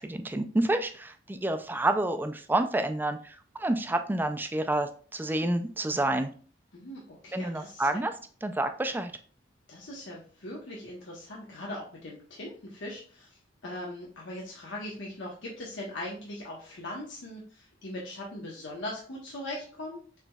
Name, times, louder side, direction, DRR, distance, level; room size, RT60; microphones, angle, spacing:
voice 1, 0.0-6.3 7.3-8.1 8.4-9.1, right 1 dB, 10° right, 8 dB, 0.3 m, -29 dB
voice 2, 6.7-7.9 9.7-20.0, left 1 dB, 85° left, -3 dB, 1.0 m, -40 dB
6.7 x 3.0 x 2.3 m, 0.43 s
head